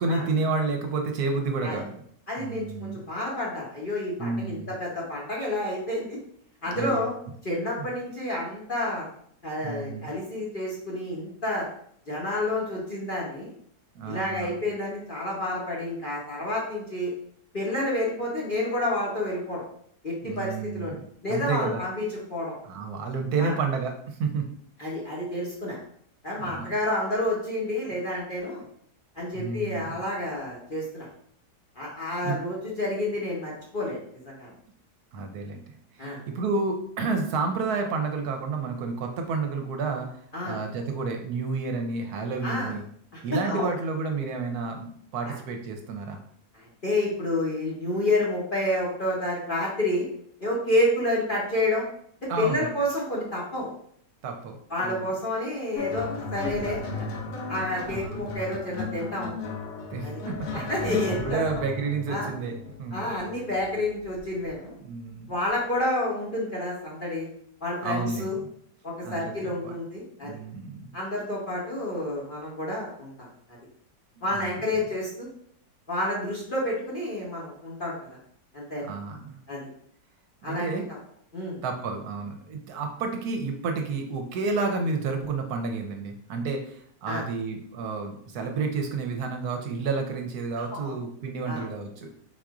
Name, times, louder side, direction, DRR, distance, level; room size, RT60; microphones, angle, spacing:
voice 1, 0.0-2.0 2.4-3.0 4.2-4.7 6.7-7.0 7.8-7.9 9.6-10.1 13.9-14.6 20.2-21.0 21.3-21.8 22.6-24.5 26.4-26.7 29.3-29.9 32.2-32.4 35.1-40.2 40.4-42.8 43.2-46.2 52.3-52.7 54.2-55.1 57.9-58.3 59.9-63.1 64.8-65.3 67.8-68.3 69.0-69.7 70.2-70.9 74.3-74.6 78.8-79.4 80.4-80.8 81.6-92.1, right 4 dB, 70° right, 4 dB, 1.1 m, -30 dB
voice 2, 2.3-6.2 6.6-7.1 7.4-9.1 9.4-11.7 12.1-13.5 14.1-17.1 17.5-19.6 20.0-20.9 21.2-22.5 23.4-23.6 24.8-25.8 26.2-28.6 29.1-31.1 31.7-34.5 36.0-36.2 40.3-40.6 42.4-42.7 43.3-43.7 45.3-45.4 46.5-50.1 50.4-51.9 52.2-53.7 54.7-56.9 57.5-59.3 60.0-60.2 60.5-61.4 62.1-62.3 62.9-64.7 65.3-67.3 67.6-68.4 68.8-70.3 70.9-73.3 74.2-75.3 75.9-78.0 78.5-78.9 79.5-79.7 80.4-80.8 81.3-81.6 87.1-87.2 90.7-90.9 91.5-91.6, left 1 dB, 40° left, -5 dB, 0.9 m, -29 dB
sound 1, 55.8-64.5 65.5-65.7, left 4 dB, 75° left, 1.4 m, -35 dB
4.1 x 2.5 x 4.7 m, 0.66 s
omnidirectional pair, 1.8 m